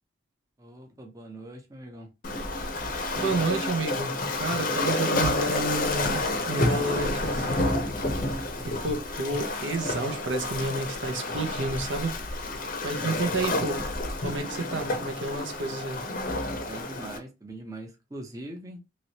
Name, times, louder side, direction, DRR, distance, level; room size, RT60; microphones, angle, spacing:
voice 1, 0.6-2.1 12.9-13.2 16.5-18.8, right 1 dB, 15° right, 0.6 m, -42 dB
Waves surf, 2.2-17.2, left 2 dB, 45° left, 0.6 m, -30 dB
voice 2, 3.2-6.2 6.5-7.8 8.6-12.1 12.8-13.8 14.2-16.0, right 2 dB, 70° right, 0.7 m, -30 dB
3.0 x 2.9 x 2.8 m
head